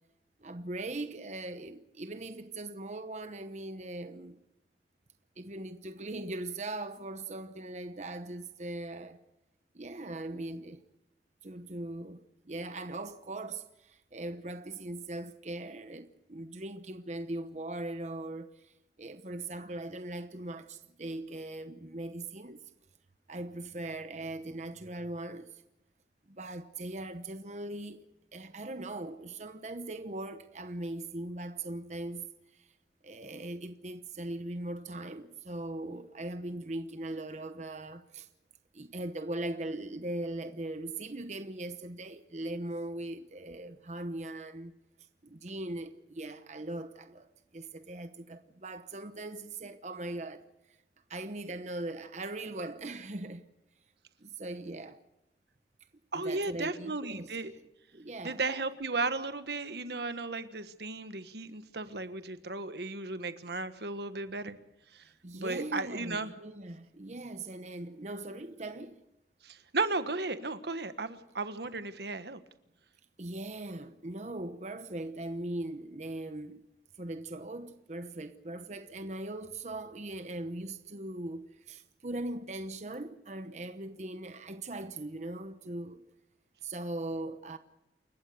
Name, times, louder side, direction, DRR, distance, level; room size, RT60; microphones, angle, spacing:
voice 1, 0.4-4.4 5.4-9.2 9.7-10.8 11.4-18.7 19.0-22.7 23.3-25.6 26.3-28.1 28.3-32.3 32.5-32.7 33.0-38.3 38.7-44.7 45.2-50.4 51.1-53.5 54.2-55.0 56.1-57.3 57.9-58.4 65.2-69.0 73.2-76.6 77.0-86.0 86.6-87.6, right 2 dB, 40° right, 1.0 m, -40 dB
voice 2, 56.1-57.5 58.2-64.6 64.9-65.1 65.3-66.3 69.4-72.4, right 3 dB, 70° right, 1.4 m, -35 dB
29.0 x 15.0 x 6.6 m
head